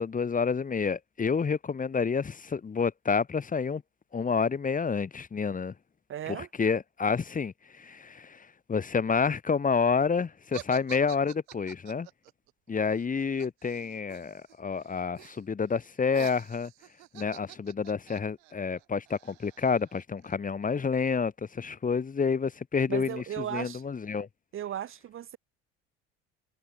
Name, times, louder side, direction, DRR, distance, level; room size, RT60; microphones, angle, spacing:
voice 1, 0.0-3.8 4.1-5.7 6.3-12.1 12.7-16.7 17.1-24.3, left 5 dB, 25° left, 1.3 m, -29 dB
voice 2, 6.1-6.5 22.9-23.8 24.5-25.4, right 10 dB, 40° right, 0.7 m, -36 dB
sound 1, 10.5-14.5 14.8-15.4 15.7-20.3, right 40 dB or more, 75° right, 3.0 m, -48 dB
hypercardioid pair, 70°, 32 cm